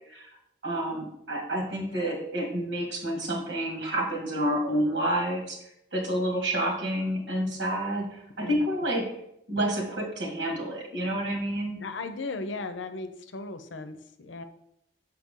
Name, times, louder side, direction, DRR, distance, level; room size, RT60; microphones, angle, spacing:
voice 1, 0.6-5.6 5.9-9.1 9.5-11.8, right 1 dB, 80° right, 0 dB, 2.0 m, -29 dB
voice 2, 11.8-14.4, left 3 dB, 85° left, 9 dB, 0.7 m, -36 dB
7.2 x 4.7 x 3.7 m, 0.77 s
head